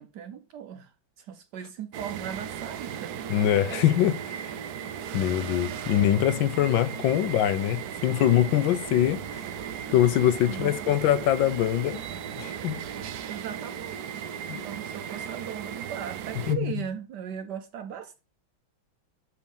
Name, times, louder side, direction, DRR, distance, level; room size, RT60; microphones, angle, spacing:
voice 1, 0.0-3.2 5.7-5.9 10.5-10.7 13.3-14.4 14.6-18.2, right 9 dB, 70° right, 1.1 m, -38 dB
sound 1, 1.9-16.5, right 8 dB, 90° right, 0.8 m, -36 dB
voice 2, 3.3-4.5 5.1-9.4 9.9-12.0 12.4-12.8 14.5-14.6 16.5-16.7, left 11 dB, 75° left, 1.3 m, -23 dB
6.8 x 4.1 x 5.3 m
omnidirectional pair, 2.2 m